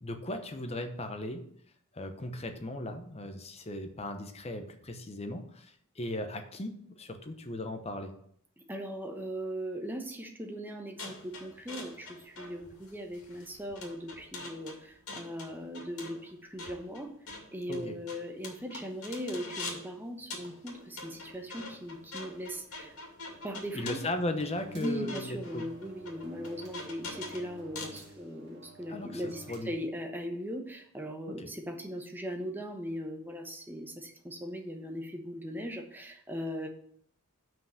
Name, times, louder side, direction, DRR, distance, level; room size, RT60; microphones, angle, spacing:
voice 1, 0.0-1.5 1.9-8.1 17.7-18.0 23.7-25.7 28.9-29.2 29.5-29.7 31.3-31.5, left 1 dB, 30° left, 7 dB, 0.8 m, -37 dB
voice 2, 8.6-17.1 17.5-23.0 23.4-24.0 24.7-36.7, equal, 10° right, 3 dB, 0.9 m, -39 dB
sound 1, 11.0-19.9 20.3-28.0, left 3 dB, 90° left, 2.3 m, -44 dB
sound 2, 23.8-29.6, equal, 50° right, 2.3 m, -51 dB
5.7 x 5.3 x 6.4 m, 0.65 s
head